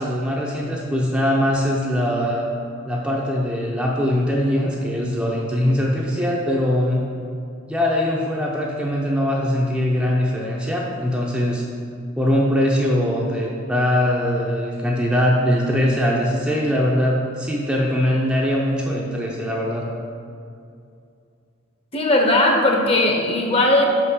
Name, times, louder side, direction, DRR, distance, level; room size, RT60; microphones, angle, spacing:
voice 1, 0.0-2.5 2.9-7.1 7.7-11.6 12.2-19.9, equal, 5° right, -4 dB, 0.6 m, -21 dB
voice 2, 21.9-23.8, left 1 dB, 30° left, 1 dB, 0.9 m, -18 dB
5.6 x 5.3 x 6.3 m, 2.5 s
head